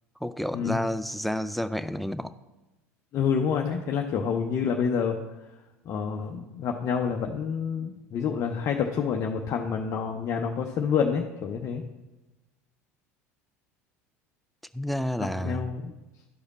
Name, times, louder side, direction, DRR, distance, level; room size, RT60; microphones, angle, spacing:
voice 1, 0.2-2.3 14.7-15.7, equal, ahead, 0.4 m, -30 dB
voice 2, 3.1-5.2 5.9-11.8 15.2-15.9, left 6 dB, 45° left, 0.7 m, -28 dB
11.5 x 4.9 x 4.1 m
hypercardioid pair, 75°, 8 cm